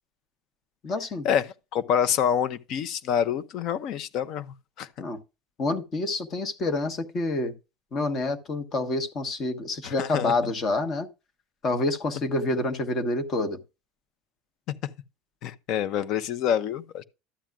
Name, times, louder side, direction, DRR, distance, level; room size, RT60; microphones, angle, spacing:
voice 1, 0.8-1.3 5.0-5.2 5.6-7.5 7.9-11.1 11.6-13.6, left 2 dB, 30° left, 1.2 m, -27 dB
voice 2, 1.7-4.9 9.8-10.3 15.4-17.0, left 9 dB, 50° left, 0.8 m, -27 dB
13.0 x 9.0 x 2.4 m
cardioid pair, 160°, 0 cm